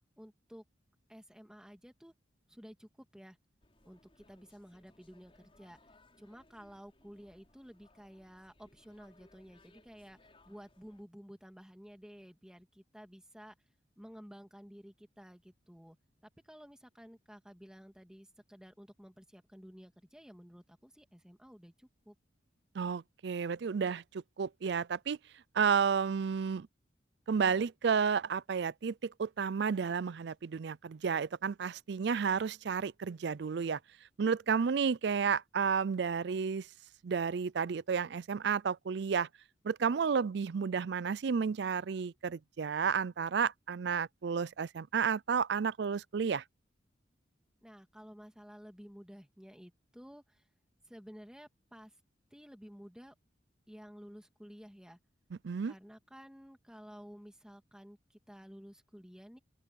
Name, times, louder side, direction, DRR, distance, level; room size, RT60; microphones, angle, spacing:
voice 1, 0.2-0.6 1.1-2.1 2.5-3.4 3.8-5.8 6.2-10.2 10.5-13.5 14.0-16.0 16.4-22.2 47.6-50.5 50.8-52.0 52.3-53.1 53.7-55.0 55.7-59.4, equal, 5° right, 2.1 m, -53 dB
sound 1, 3.6-11.0, left 2 dB, 30° left, 5.7 m, -65 dB
voice 2, 22.7-25.2 25.5-26.7 27.3-33.8 34.2-36.7 37.0-39.3 39.6-46.4 55.4-55.7, right 6 dB, 60° right, 0.4 m, -32 dB
open air
head